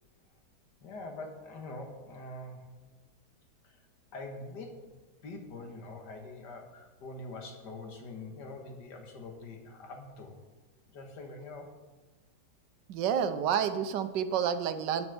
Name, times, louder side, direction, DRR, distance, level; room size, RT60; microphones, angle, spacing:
voice 1, 0.8-2.7 3.6-3.8 4.1-4.8 5.2-10.4 10.9-11.7, left 2 dB, 75° left, 3 dB, 2.1 m, -44 dB
voice 2, 12.9-15.1, right 8 dB, 90° right, 10 dB, 1.4 m, -29 dB
10.5 x 7.1 x 6.9 m, 1.3 s
omnidirectional pair, 1.8 m